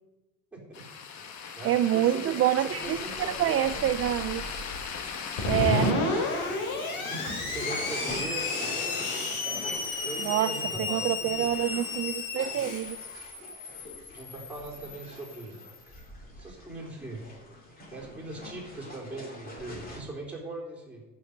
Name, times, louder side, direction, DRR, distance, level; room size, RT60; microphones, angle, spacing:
voice 1, 0.5-0.8 1.5-3.8 5.4-6.2 7.4-9.1 10.0-11.5 14.1-15.6 16.4-17.2 17.9-21.1, right 2 dB, 5° right, -4 dB, 3.8 m, -40 dB
sound 1, 0.7-5.9, left 6 dB, 55° left, 1.4 m, -38 dB
voice 2, 1.6-4.4 5.4-6.0 10.2-10.5 10.8-13.0, right 12 dB, 40° right, 10 dB, 0.5 m, -27 dB
sound 2, 2.6-20.0, left 1 dB, 25° left, 2.6 m, -43 dB
Screech, 5.4-15.8, left 3 dB, 85° left, 2.9 m, -32 dB
14.0 x 6.3 x 6.6 m, 1.1 s
cardioid pair, 135°, 34 cm